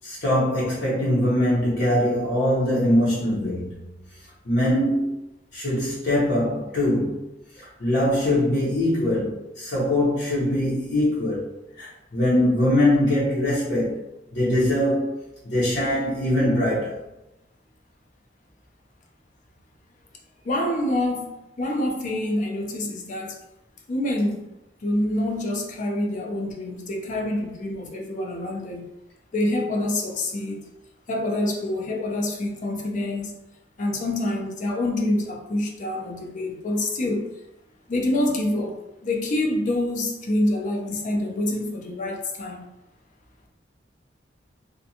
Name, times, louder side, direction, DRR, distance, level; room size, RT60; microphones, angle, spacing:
voice 1, 0.0-3.9 4.4-5.2 5.5-7.2 7.6-14.0 14.3-17.0, left 1 dB, 65° left, 0.8 m, -22 dB
voice 2, 20.4-23.4 23.9-24.5 24.8-28.8 29.3-30.7 31.1-33.4 33.8-37.3 37.9-38.7 39.0-42.6, left 1 dB, 45° left, 0.4 m, -26 dB
2.5 x 2.2 x 2.7 m
head